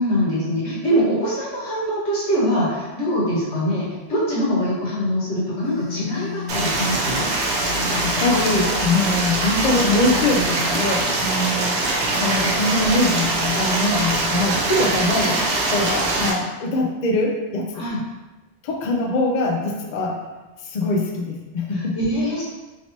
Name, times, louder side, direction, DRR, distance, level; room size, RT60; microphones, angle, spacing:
voice 1, 0.0-7.3 17.7-18.0 21.7-22.4, equal, 90° left, -7 dB, 1.4 m, -23 dB
Telephone, 5.6-6.7 7.6-8.7 9.6-10.7, left 7 dB, 25° left, 1.0 m, -32 dB
Stream, 6.5-16.3, right 2 dB, 85° right, 0.9 m, -23 dB
voice 2, 8.0-11.8 12.2-15.4 15.7-17.8 18.6-20.2 20.6-22.0, left 2 dB, 55° left, 1 dB, 0.5 m, -23 dB
3.1 x 2.8 x 2.9 m, 1.1 s
omnidirectional pair, 1.1 m